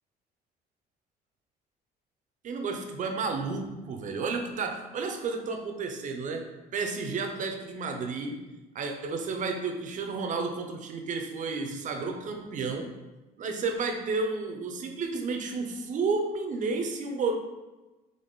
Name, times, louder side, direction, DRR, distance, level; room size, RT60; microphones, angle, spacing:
voice 1, 2.4-8.5 8.7-12.9 13.4-17.4, right 4 dB, 50° right, 5 dB, 0.7 m, -32 dB
4.0 x 3.5 x 3.7 m, 1.1 s
cardioid pair, 110°, 17 cm